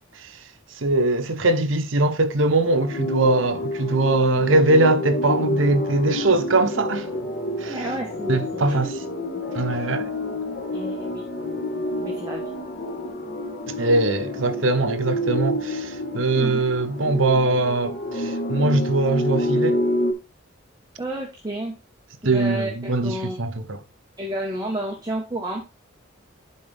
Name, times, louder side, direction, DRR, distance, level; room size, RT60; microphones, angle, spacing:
voice 1, 0.8-7.1 7.6-7.8 8.3-8.9 9.5-10.1 13.7-19.8 22.2-23.8, right 2 dB, 75° right, 0.9 m, -21 dB
sound 1, 2.6-20.1, left 1 dB, 60° left, 1.9 m, -28 dB
voice 2, 7.7-9.0 10.7-11.3 12.0-12.5 16.1-16.6 21.0-21.7 22.2-23.4 24.2-25.6, right 1 dB, 20° right, 1.4 m, -31 dB
11.0 x 4.4 x 3.5 m
head